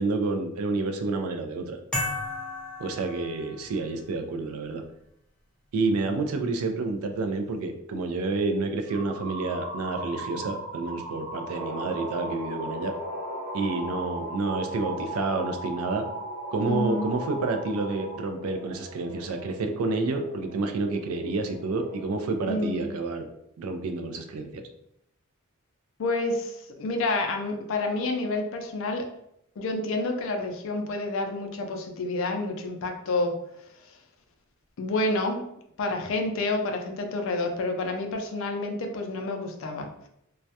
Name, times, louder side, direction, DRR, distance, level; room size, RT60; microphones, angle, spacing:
voice 1, 0.0-1.8 2.8-4.8 5.7-12.9 13.5-16.1 16.5-23.3 23.6-24.6, right 3 dB, 80° right, 5 dB, 0.4 m, -29 dB
sound 1, 1.9-3.8, left 2 dB, 5° left, 0.5 m, -33 dB
sound 2, 8.9-18.2, right 2 dB, 15° right, 1.0 m, -37 dB
sound 3, 11.5-22.6, equal, 45° right, 0.9 m, -42 dB
voice 2, 16.7-17.1 22.4-22.9 26.0-29.1 29.6-33.3 34.8-35.4 35.8-39.9, left 2 dB, 65° left, 4 dB, 0.4 m, -29 dB
2.2 x 2.1 x 2.7 m, 0.78 s
head